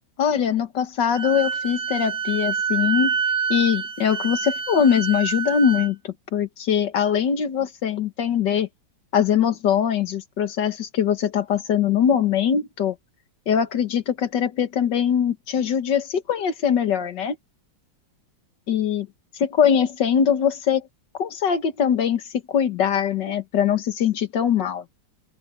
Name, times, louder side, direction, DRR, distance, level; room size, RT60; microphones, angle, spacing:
voice 1, 0.2-3.2 3.5-8.7 9.1-13.0 13.5-17.4 18.7-19.1 19.4-20.9 21.2-22.2 22.5-24.8, left 8 dB, 65° left, 1.9 m, -22 dB
Wind instrument woodwind instrument, 1.1-5.9, right 6 dB, 85° right, 2.0 m, -27 dB
open air
omnidirectional pair, 2.2 m